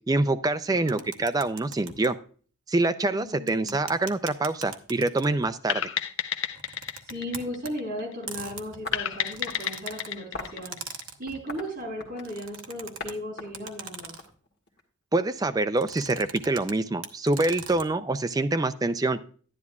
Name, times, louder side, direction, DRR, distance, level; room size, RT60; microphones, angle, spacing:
voice 1, 0.0-2.1 2.7-5.8 15.1-19.2, right 2 dB, 20° right, 10 dB, 0.3 m, -25 dB
voice 2, 0.7-1.0 3.1-3.8 7.1-10.8 11.2-14.1, equal, 45° right, -2 dB, 3.9 m, -36 dB
sound 1, 0.9-2.1 3.5-5.5 6.5-7.7 8.3-10.1 10.6-11.4 12.2-13.1 13.5-14.3 15.8-16.7 17.0-17.9, right 6 dB, 80° right, 0.9 m, -41 dB
sound 2, 5.7-8.2 8.9-11.5, left 9 dB, 75° left, 0.6 m, -32 dB
sound 3, 8.8-9.7 10.3-10.6 11.3-12.4 13.0-13.1 13.4-14.8, left 3 dB, 50° left, 1.6 m, -40 dB
10.5 x 10.0 x 2.4 m, 0.42 s
head